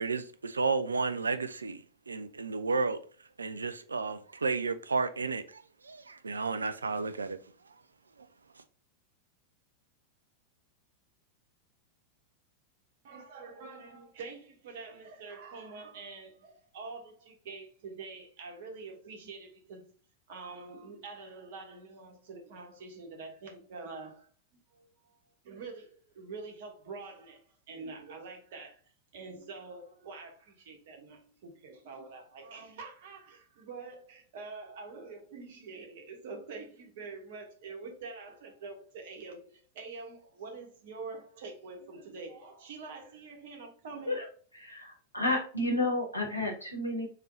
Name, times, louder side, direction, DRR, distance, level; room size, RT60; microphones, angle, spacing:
voice 1, 0.0-3.0 3.4-7.4, right 4 dB, 75° right, 0.4 m, -32 dB
voice 2, 13.0-19.9 20.3-24.3 24.7-25.2 25.4-28.8 29.1-44.2, right 4 dB, 55° right, 1.2 m, -46 dB
voice 3, 44.6-47.1, left 2 dB, 85° left, 1.4 m, -31 dB
3.7 x 3.2 x 3.9 m
figure-of-eight pair, 90°, 0 cm